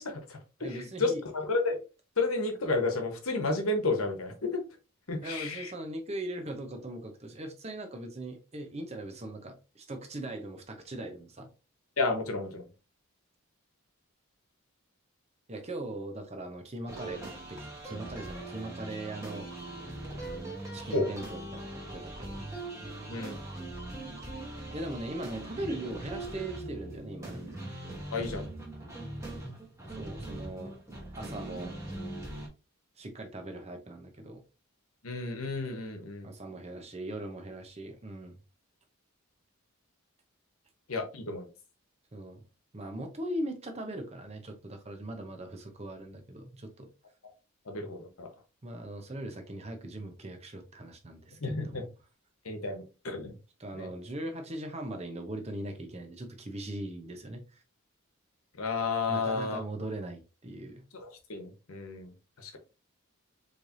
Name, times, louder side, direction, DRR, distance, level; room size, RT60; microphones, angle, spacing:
voice 1, 0.0-1.8 2.2-4.6 5.1-5.7 12.0-12.7 20.9-21.1 23.1-23.4 28.1-28.5 35.0-36.3 40.9-41.5 47.6-48.3 51.4-51.8 52.4-53.4 53.7-53.9 58.6-59.6 60.9-62.6, left 3 dB, 75° left, 1.1 m, -32 dB
voice 2, 0.6-1.2 5.2-11.5 15.5-19.5 20.7-22.5 24.7-27.5 30.0-30.7 31.1-31.8 33.0-34.4 36.2-38.4 42.1-42.4 42.7-46.9 48.6-51.4 51.6-51.9 53.6-57.6 59.1-60.8, right 1 dB, 30° right, 0.7 m, -40 dB
sound 1, 16.9-32.5, right 2 dB, 15° right, 1.2 m, -41 dB
4.4 x 3.2 x 2.6 m
head